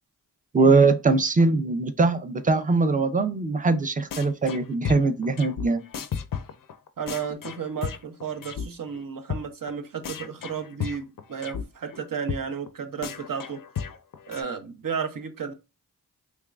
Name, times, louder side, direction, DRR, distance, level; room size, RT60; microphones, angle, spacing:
voice 1, 0.5-5.8, right 3 dB, 20° right, 0.5 m, -21 dB
sound 1, 4.1-4.6 4.8-8.6 8.9-9.0 9.3-9.4 9.7-9.8 10.0-11.6 11.9-12.0 12.3-12.4 12.7-12.8 13.0-14.4, left 7 dB, 55° left, 0.5 m, -33 dB
voice 2, 7.0-13.6 14.3-15.5, right 6 dB, 55° right, 0.8 m, -33 dB
3.5 x 3.1 x 2.3 m
cardioid pair, 60°, 40 cm